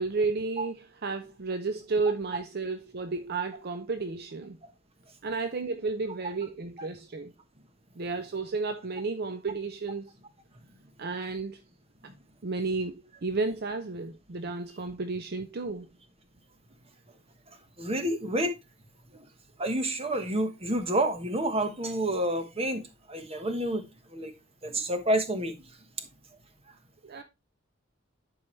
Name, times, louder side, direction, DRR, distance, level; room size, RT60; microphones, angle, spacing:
voice 1, 0.0-4.6 5.2-7.3 8.0-10.1 11.0-11.6 12.4-15.9 27.0-27.2, right 3 dB, 50° right, 0.6 m, -32 dB
voice 2, 17.8-18.5 19.6-22.8 23.1-23.8 24.1-24.3 24.6-25.5, right 1 dB, 30° right, 1.2 m, -28 dB
11.0 x 4.7 x 3.2 m
head